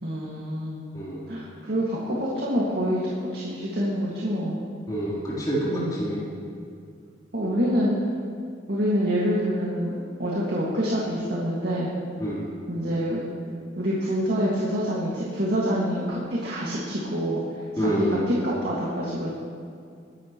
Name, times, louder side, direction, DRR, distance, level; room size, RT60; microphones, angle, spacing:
voice 1, 0.0-0.8 1.3-3.0 3.3-4.6 5.7-6.0 7.3-7.9 8.7-11.9 12.7-13.2 13.8-17.4 17.7-19.3, equal, 60° right, -5 dB, 2.1 m, -26 dB
voice 2, 0.9-1.3 4.9-6.2 12.2-12.5 17.8-18.3, equal, 20° left, -8 dB, 3.8 m, -27 dB
21.0 x 11.0 x 3.1 m, 2.3 s
head